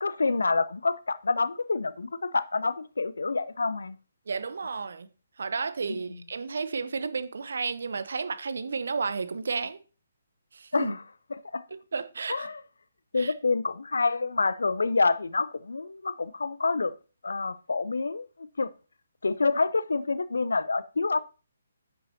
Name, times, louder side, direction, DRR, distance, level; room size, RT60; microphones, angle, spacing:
voice 1, 0.0-4.0 5.9-6.2 10.7-11.0 11.3-11.6 12.3-12.6 13.1-16.9 17.2-18.7 19.2-21.2, left 3 dB, 65° left, 0.5 m, -27 dB
voice 2, 4.3-5.1 5.4-9.8 10.5-10.9 11.9-12.5 13.2-13.3, right 5 dB, 60° right, 0.9 m, -32 dB
10.5 x 7.6 x 2.8 m
figure-of-eight pair, 135°, 0 cm